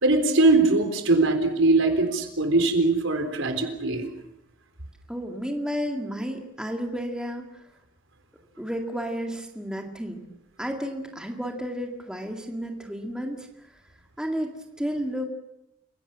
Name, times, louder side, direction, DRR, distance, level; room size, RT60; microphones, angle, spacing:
voice 1, 0.0-4.0, right 2 dB, 75° right, 6 dB, 3.9 m, -21 dB
voice 2, 5.1-7.4 8.6-10.2 10.6-13.5 14.2-14.5 14.8-15.3, equal, 5° right, 2 dB, 2.1 m, -31 dB
29.5 x 17.0 x 7.4 m, 0.88 s
head